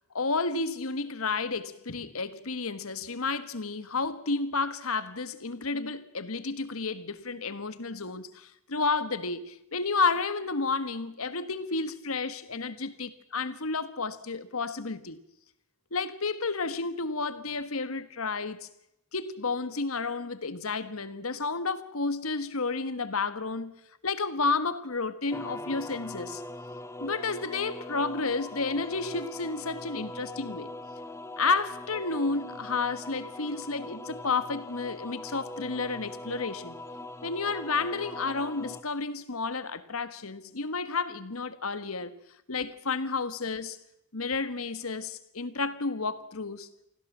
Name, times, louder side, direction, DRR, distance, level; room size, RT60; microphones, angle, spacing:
voice 1, 0.1-15.2 15.9-18.7 19.1-23.7 24.0-26.4 27.0-30.7 31.4-36.8 37.2-42.1 42.5-43.8 44.1-46.7, left 4 dB, 80° left, 1.5 m, -31 dB
sound 1, 25.3-38.8, left 1 dB, 15° left, 0.9 m, -41 dB
25.0 x 15.5 x 7.3 m
head